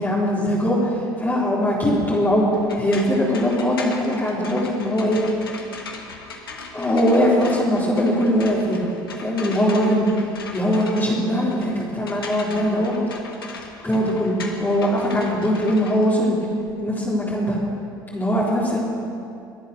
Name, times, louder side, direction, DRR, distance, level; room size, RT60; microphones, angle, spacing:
voice 1, 0.0-2.5 2.8-5.2 6.7-8.8 9.2-13.0 13.8-16.4 16.8-17.6 18.1-18.8, equal, 15° left, -7 dB, 4.1 m, -21 dB
sound 1, 2.5-16.7, left 4 dB, 85° left, 1.5 m, -38 dB
23.5 x 8.7 x 6.8 m, 2.6 s
figure-of-eight pair, 65°, 12 cm